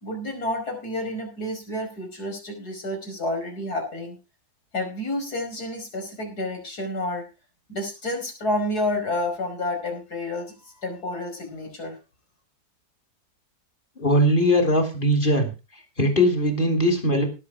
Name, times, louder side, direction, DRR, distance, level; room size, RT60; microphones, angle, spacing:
voice 1, 0.0-4.2 4.7-7.2 7.7-12.0, left 1 dB, 70° left, 2 dB, 5.6 m, -30 dB
voice 2, 14.0-15.5 16.0-17.3, equal, 30° left, 4 dB, 3.4 m, -20 dB
18.0 x 7.4 x 4.9 m, 0.30 s
omnidirectional pair, 1.7 m